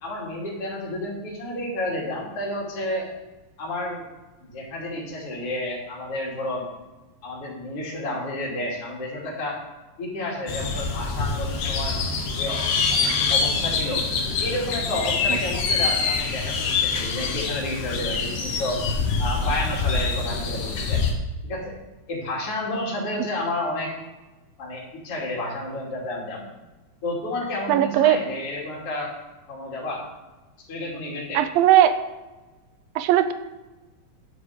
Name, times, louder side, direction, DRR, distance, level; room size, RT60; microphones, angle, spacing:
voice 1, 0.0-3.1 3.6-4.1 4.4-6.7 7.2-9.6 10.0-12.0 12.3-14.0 14.4-18.8 19.2-21.0 21.4-21.7 22.1-23.9 24.6-26.5 27.0-29.1 29.5-30.0 30.7-31.4, left 1 dB, 40° left, -4 dB, 3.5 m, -31 dB
sound 1, 10.5-21.1, left 4 dB, 85° left, 3.1 m, -25 dB
voice 2, 27.7-28.2 31.3-32.0 33.0-33.3, right 12 dB, 90° right, 11 dB, 2.4 m, -18 dB
11.0 x 7.5 x 5.0 m, 1.1 s
omnidirectional pair, 4.1 m